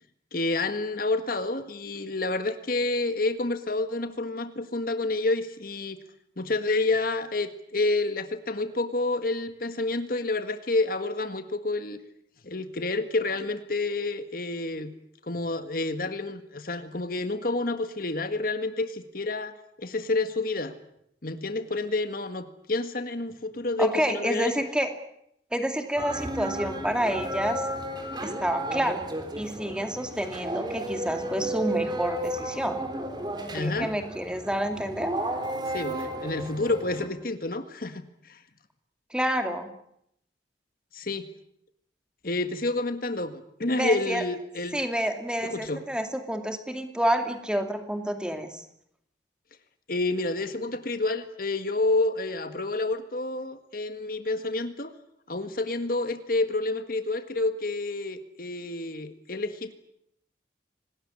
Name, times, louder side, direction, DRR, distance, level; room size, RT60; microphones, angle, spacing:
voice 1, 0.3-6.0 6.4-12.0 12.4-14.9 15.2-20.7 21.2-24.5 33.5-33.9 35.7-38.4 40.9-41.3 42.2-44.8 45.4-45.8 49.9-54.9 55.3-59.7, left 2 dB, 50° left, 9 dB, 1.7 m, -29 dB
voice 2, 23.8-24.9 25.5-27.6 28.2-29.0 29.4-32.8 33.6-35.1 39.1-39.7 43.7-44.2 44.7-48.6, equal, 5° right, 6 dB, 2.5 m, -29 dB
sound 1, 26.0-37.1, right 1 dB, 25° right, 3.8 m, -33 dB
26.0 x 19.5 x 9.8 m, 0.75 s
head